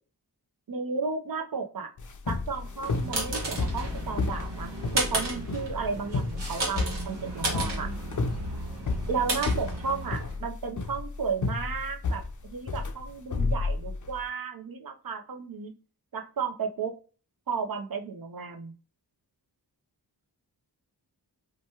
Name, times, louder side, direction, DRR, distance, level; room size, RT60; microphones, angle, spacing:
voice 1, 0.7-1.9 2.3-7.9 9.1-15.7 16.1-16.9 17.5-18.7, right 5 dB, 55° right, 4 dB, 0.7 m, -33 dB
sound 1, 2.0-14.2, left 4 dB, 45° left, 0.5 m, -32 dB
sound 2, 2.6-10.4, right 1 dB, 85° right, 1.2 m, -33 dB
2.9 x 2.3 x 2.8 m, 0.37 s
cardioid pair, 50°, 42 cm